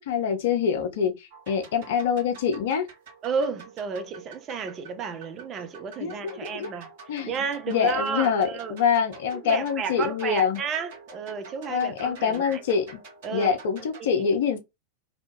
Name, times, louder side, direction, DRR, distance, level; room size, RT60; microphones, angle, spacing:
voice 1, 0.0-2.9 6.0-6.7 7.1-7.3 7.7-10.6 11.7-13.0 13.3-14.6, left 7 dB, 55° left, 0.6 m, -25 dB
sound 1, 1.3-14.0, right 4 dB, 50° right, 1.1 m, -47 dB
voice 2, 3.2-6.9 7.2-8.8 9.4-12.6 13.2-13.5 14.1-14.3, right 5 dB, 30° right, 0.5 m, -32 dB
2.7 x 2.2 x 2.7 m
figure-of-eight pair, 90°, 0 cm